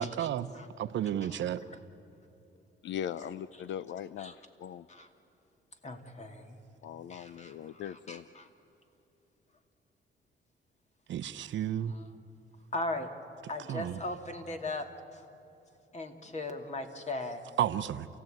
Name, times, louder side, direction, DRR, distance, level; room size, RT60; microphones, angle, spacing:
voice 1, 0.0-0.5 0.8-1.6 11.1-12.0 13.7-14.0 17.6-18.1, right 10 dB, 70° right, 12 dB, 0.9 m, -32 dB
voice 2, 1.2-1.8 4.2-4.3 4.9-5.1 5.8-6.6 7.1-8.5 11.4-11.5 11.9-12.1 12.7-13.1 13.5-15.2 15.9-17.4, left 2 dB, 35° left, 5 dB, 2.5 m, -39 dB
voice 3, 2.8-4.9 6.8-8.3, left 9 dB, 70° left, 16 dB, 0.6 m, -40 dB
29.0 x 16.0 x 9.2 m, 2.9 s
cardioid pair, 90°, 20 cm